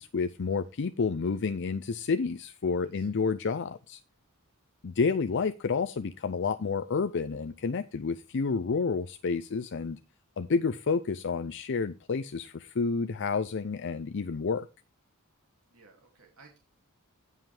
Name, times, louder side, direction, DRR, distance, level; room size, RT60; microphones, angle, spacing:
voice 1, 0.0-4.0 4.8-10.0 10.4-14.7, left 4 dB, 55° left, 0.5 m, -30 dB
voice 2, 2.8-3.2 15.7-16.6, right 4 dB, 70° right, 2.7 m, -58 dB
16.5 x 5.6 x 3.4 m
head